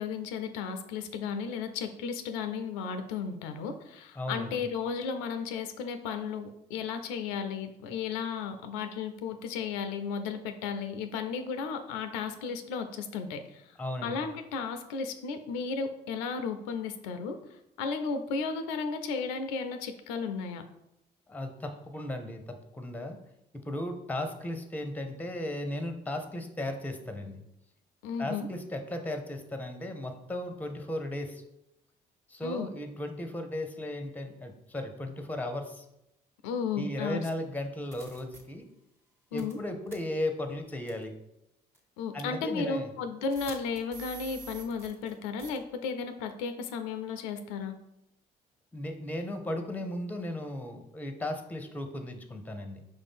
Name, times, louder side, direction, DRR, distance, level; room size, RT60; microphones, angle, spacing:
voice 1, 0.0-13.6 14.0-17.4 17.8-20.6 28.0-28.5 32.4-32.7 36.4-37.2 39.3-39.6 42.0-47.7, left 5 dB, 90° left, 8 dB, 0.4 m, -34 dB
voice 2, 4.2-4.7 13.8-14.3 21.3-23.2 23.5-27.4 28.2-31.4 32.3-35.8 36.7-38.7 39.3-41.1 42.1-42.9 48.7-52.8, left 1 dB, 10° left, 6 dB, 0.7 m, -36 dB
sound 1, 37.3-37.4 37.9-38.4 39.4-39.6 39.9-40.0 40.9-41.0 41.7-41.8 43.3-45.1 45.4-45.6, right 4 dB, 10° right, 1.4 m, -46 dB
5.2 x 2.5 x 3.6 m, 0.86 s
supercardioid pair, 65°, 20 cm